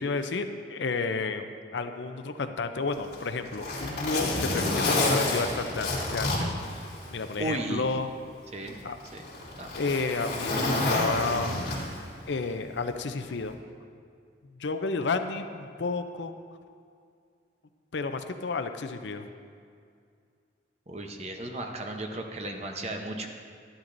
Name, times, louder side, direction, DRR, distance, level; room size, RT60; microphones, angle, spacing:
voice 1, 0.0-1.5 1.7-6.8 7.1-8.1 8.8-9.0 9.7-11.6 12.3-13.5 14.6-16.3 17.9-19.3, left 4 dB, 70° left, 8 dB, 0.5 m, -31 dB
Zipper (clothing), 2.9-7.4 7.8-7.9 8.7-12.1 13.3-13.5, left 2 dB, 55° left, 2.7 m, -29 dB
voice 2, 7.4-7.9 8.5-8.8 9.1-9.2 9.6-9.8 20.9-23.3, right 2 dB, 35° right, 3 dB, 0.8 m, -35 dB
12.0 x 11.5 x 2.6 m, 2.3 s
head